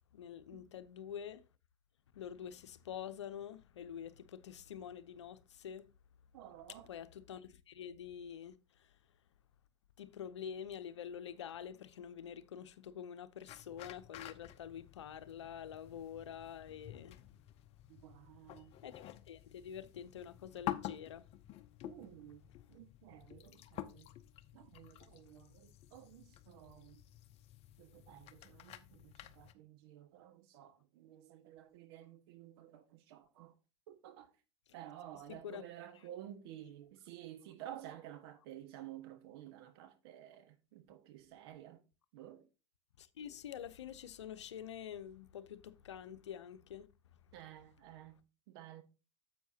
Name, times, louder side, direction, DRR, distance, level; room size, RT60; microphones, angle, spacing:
voice 1, 0.1-1.4 2.1-5.9 6.9-8.5 10.0-17.2 18.8-21.2 35.4-35.6 36.1-36.2 43.0-46.9, left 9 dB, 80° left, 0.8 m, -47 dB
voice 2, 6.3-6.9 17.9-18.7 21.8-24.1 24.5-27.0 27.8-33.5 33.9-34.3 34.7-41.8 42.1-42.5 47.3-48.8, right 12 dB, 60° right, 1.5 m, -53 dB
sound 1, 13.5-29.5, left 13 dB, 45° left, 0.8 m, -50 dB
10.0 x 7.8 x 2.8 m
hypercardioid pair, 90°, 15 cm